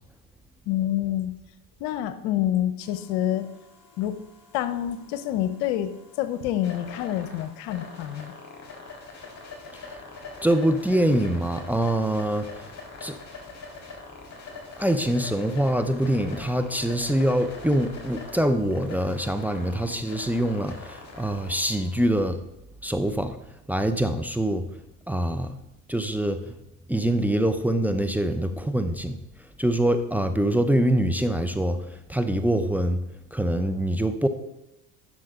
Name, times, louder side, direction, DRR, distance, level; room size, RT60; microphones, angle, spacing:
voice 1, 0.7-1.3 1.8-3.5 4.0-4.2 4.5-8.3, left 12 dB, 70° left, 12 dB, 0.9 m, -27 dB
sound 1, 2.8-22.0, left 3 dB, 40° left, 3.8 m, -44 dB
voice 2, 10.4-12.5 13.0-13.2 14.8-22.4 22.8-23.4 23.7-24.6 25.1-25.6 25.9-26.5 26.9-29.2 29.6-33.0 33.3-34.3, right 1 dB, 5° right, 8 dB, 0.7 m, -24 dB
11.5 x 6.5 x 3.7 m, 0.93 s
hypercardioid pair, 75°, 45 cm